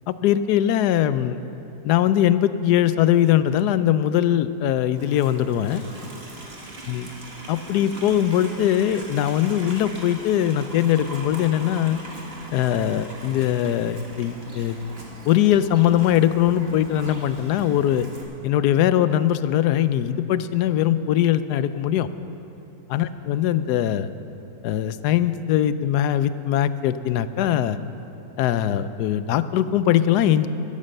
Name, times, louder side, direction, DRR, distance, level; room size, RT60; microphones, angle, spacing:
voice 1, 0.1-1.4 1.8-5.8 6.9-7.1 7.5-12.0 12.5-14.8 15.3-18.1 18.4-22.1 22.9-24.1 24.6-27.8 28.4-30.5, left 11 dB, 90° left, 13 dB, 1.1 m, -21 dB
Livestock farm animals working animals, 5.0-18.2, right 2 dB, 40° right, 1.9 m, -40 dB
12.5 x 12.5 x 6.6 m, 2.9 s
omnidirectional pair, 1.7 m